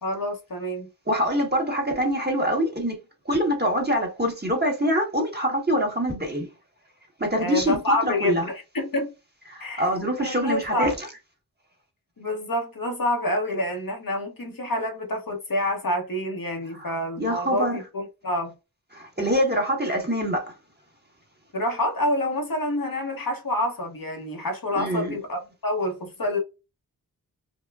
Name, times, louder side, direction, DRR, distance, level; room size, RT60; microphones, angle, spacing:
voice 1, 0.0-0.9 7.4-9.1 9.6-10.9 12.2-18.5 21.5-26.4, left 1 dB, 60° left, 1.1 m, -28 dB
voice 2, 1.1-3.0 3.2-6.5 7.2-8.4 9.5-11.1 16.8-17.8 18.9-20.5 24.8-25.2, equal, 25° right, 1.4 m, -25 dB
5.2 x 2.2 x 2.4 m
wide cardioid pair, 55°, 38 cm